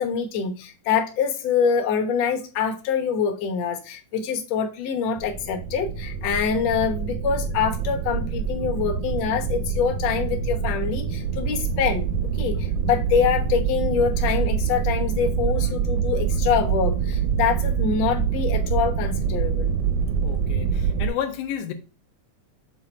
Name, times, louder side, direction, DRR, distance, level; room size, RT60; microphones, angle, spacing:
voice 1, 0.0-12.1 12.4-19.7, left 6 dB, 60° left, 2.1 m, -25 dB
sound 1, 5.2-21.1, right 6 dB, 75° right, 2.2 m, -25 dB
voice 2, 20.2-21.7, left 9 dB, 80° left, 2.3 m, -31 dB
7.2 x 3.7 x 4.3 m
omnidirectional pair, 3.6 m